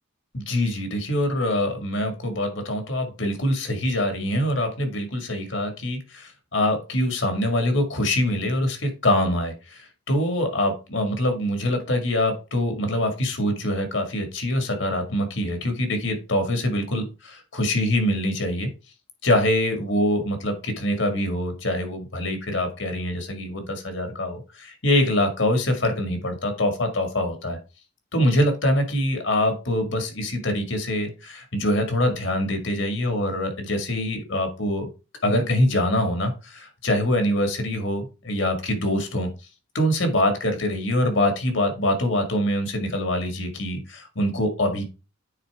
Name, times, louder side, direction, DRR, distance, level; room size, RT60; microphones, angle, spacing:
voice 1, 0.3-18.7 19.2-27.6 28.1-34.9 35.2-39.3 39.7-44.9, left 1 dB, 70° left, 6 dB, 2.1 m, -24 dB
9.5 x 4.3 x 3.5 m, 0.30 s
head